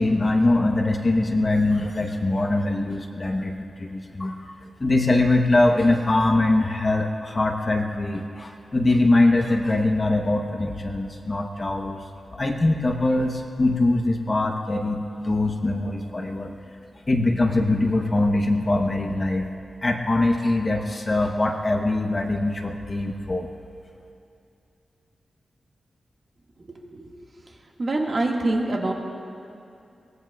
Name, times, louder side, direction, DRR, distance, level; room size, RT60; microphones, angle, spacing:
voice 1, 0.0-4.4 4.8-12.1 12.3-16.5 17.1-19.5 19.8-23.5, left 2 dB, 25° left, 2 dB, 0.9 m, -22 dB
voice 2, 26.7-27.1 27.8-28.9, right 2 dB, 40° right, -1 dB, 1.7 m, -25 dB
23.0 x 19.5 x 2.3 m, 2.6 s
wide cardioid pair, 160°, 0 cm